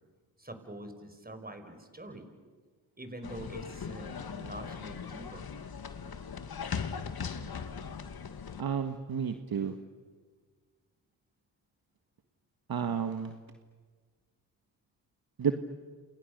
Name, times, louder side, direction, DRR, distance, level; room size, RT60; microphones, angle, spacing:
voice 1, 0.4-2.5 3.0-5.5, right 1 dB, 20° right, 7 dB, 5.4 m, -45 dB
sound 1, 3.2-8.6, left 6 dB, 50° left, 2.1 m, -39 dB
voice 2, 8.6-9.8 12.7-13.4 15.4-15.5, right 7 dB, 50° right, 7 dB, 1.7 m, -31 dB
29.0 x 28.0 x 6.8 m, 1.5 s
supercardioid pair, 50°, 47 cm